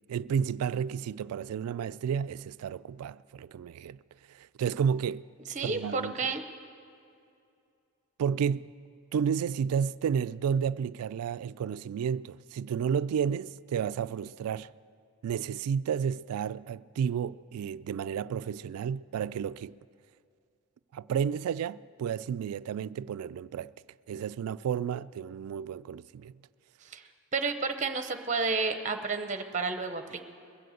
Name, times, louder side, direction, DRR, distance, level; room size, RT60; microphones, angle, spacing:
voice 1, 0.1-4.0 4.3-5.2 5.6-6.3 8.2-8.7 9.1-14.7 15.2-19.8 20.9-23.7 24.1-26.3, right 7 dB, 85° right, 0.3 m, -31 dB
voice 2, 5.5-6.4 26.9-27.0 27.3-30.3, right 4 dB, 30° right, 0.7 m, -31 dB
21.5 x 7.7 x 7.8 m
head